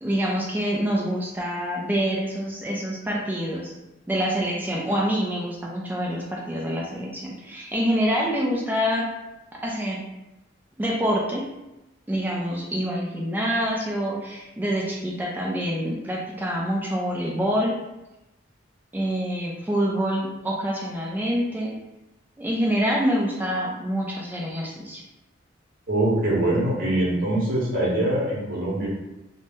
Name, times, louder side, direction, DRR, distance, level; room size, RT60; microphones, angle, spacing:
voice 1, 0.0-3.7 4.1-9.1 9.6-10.0 10.8-11.5 12.1-17.8 18.9-21.8 22.4-25.0, equal, 10° right, -3 dB, 0.3 m, -26 dB
voice 2, 25.9-28.9, right 1 dB, 50° right, -5 dB, 0.9 m, -23 dB
2.7 x 2.0 x 3.4 m, 0.95 s
head